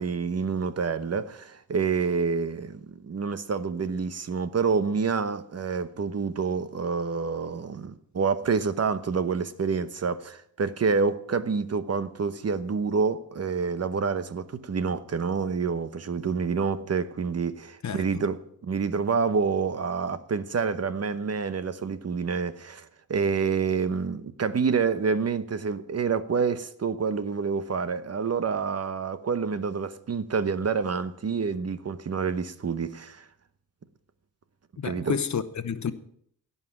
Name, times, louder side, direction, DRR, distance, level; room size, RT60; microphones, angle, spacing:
voice 1, 0.0-33.2 34.8-35.2, right 5 dB, 45° right, 1.0 m, -28 dB
voice 2, 17.8-18.3 34.8-35.9, left 7 dB, 55° left, 1.0 m, -30 dB
17.0 x 5.7 x 8.6 m
cardioid pair, 90°, 35 cm